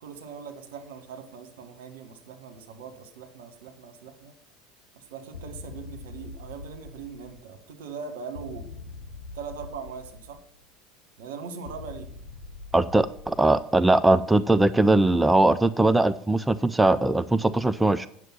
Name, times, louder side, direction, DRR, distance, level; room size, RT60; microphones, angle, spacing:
voice 1, 0.0-4.3 4.9-8.7 9.3-10.4 11.2-12.1, right 6 dB, 70° right, 7 dB, 1.3 m, -41 dB
Scary Foley, 5.3-7.6 8.3-10.6 11.6-13.9, left 3 dB, 90° left, 0.9 m, -43 dB
voice 2, 12.7-18.1, right 2 dB, 10° right, 14 dB, 0.4 m, -20 dB
9.0 x 6.2 x 5.9 m, 0.67 s
hypercardioid pair, 75°, 0 cm